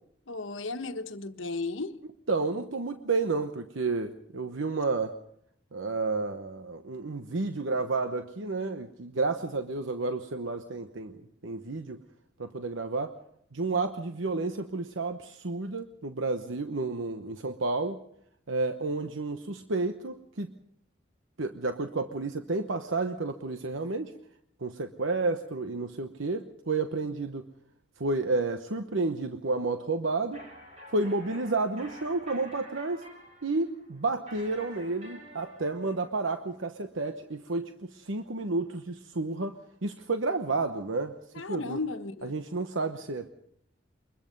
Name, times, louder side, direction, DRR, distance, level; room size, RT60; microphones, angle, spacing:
voice 1, 0.3-1.9 41.3-42.4, left 3 dB, 90° left, 1.3 m, -35 dB
voice 2, 2.3-5.1 5.7-11.2 11.4-12.0 12.4-13.1 13.5-18.0 18.5-20.5 21.4-24.1 24.6-27.4 28.0-30.4 30.9-33.0 33.4-41.8 42.2-43.3, right 3 dB, 90° right, 1.0 m, -31 dB
sound 1, 30.3-36.1, equal, 35° right, 5.5 m, -50 dB
24.0 x 21.5 x 5.4 m
head